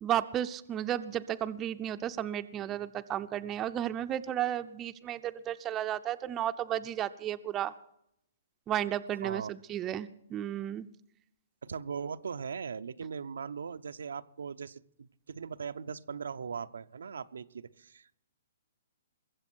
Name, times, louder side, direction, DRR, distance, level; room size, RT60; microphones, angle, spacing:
voice 1, 0.0-7.7 8.7-10.9, right 11 dB, 20° right, 10 dB, 0.5 m, -33 dB
voice 2, 9.1-9.5 11.6-18.2, right 6 dB, 90° right, 10 dB, 0.6 m, -39 dB
21.5 x 7.6 x 6.1 m, 0.76 s
hypercardioid pair, 155°, 0 cm